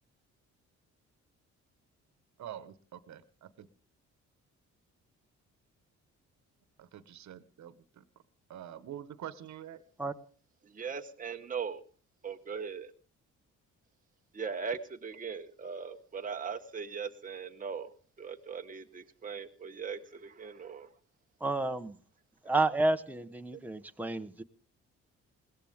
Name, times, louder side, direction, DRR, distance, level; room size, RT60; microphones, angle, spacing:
voice 1, 2.4-3.7 6.8-8.0 8.5-9.8, right 10 dB, 65° right, 13 dB, 1.4 m, -46 dB
voice 2, 10.6-11.8 12.2-12.9 14.3-17.9 18.2-20.9 23.5-23.6, right 6 dB, 25° right, 4 dB, 1.2 m, -39 dB
voice 3, 21.4-22.0 22.4-24.4, right 2 dB, 5° right, 6 dB, 1.3 m, -30 dB
21.5 x 17.0 x 3.7 m, 0.40 s
cardioid pair, 90°, 30 cm